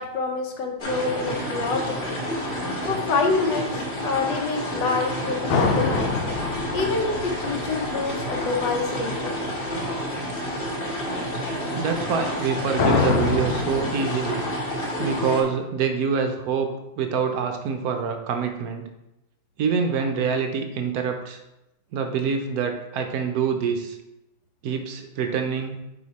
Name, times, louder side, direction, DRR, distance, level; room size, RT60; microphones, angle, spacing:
voice 1, 0.0-2.2 2.8-6.1 6.7-9.3, left 4 dB, 70° left, 3 dB, 1.4 m, -27 dB
sound 1, 0.8-15.4, equal, 35° left, 1.1 m, -29 dB
sound 2, 5.5-8.5 12.8-13.8, left 4 dB, 85° left, 1.5 m, -25 dB
voice 2, 11.8-14.4 15.0-16.7 17.0-18.8 19.6-21.4 21.9-24.0 24.6-25.8, right 6 dB, 70° right, 5 dB, 0.9 m, -25 dB
4.9 x 4.7 x 4.1 m, 0.92 s
omnidirectional pair, 2.1 m